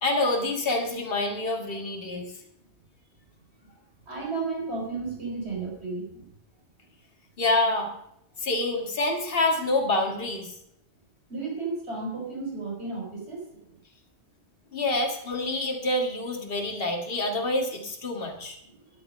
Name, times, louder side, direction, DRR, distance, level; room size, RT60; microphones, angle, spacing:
voice 1, 0.0-2.3 7.4-7.9 8.4-10.5 14.7-18.6, left 2 dB, 55° left, 2 dB, 2.0 m, -27 dB
voice 2, 4.1-6.3 11.3-13.6, right 3 dB, 70° right, -1 dB, 4.5 m, -33 dB
11.5 x 11.0 x 5.2 m, 0.76 s
omnidirectional pair, 1.1 m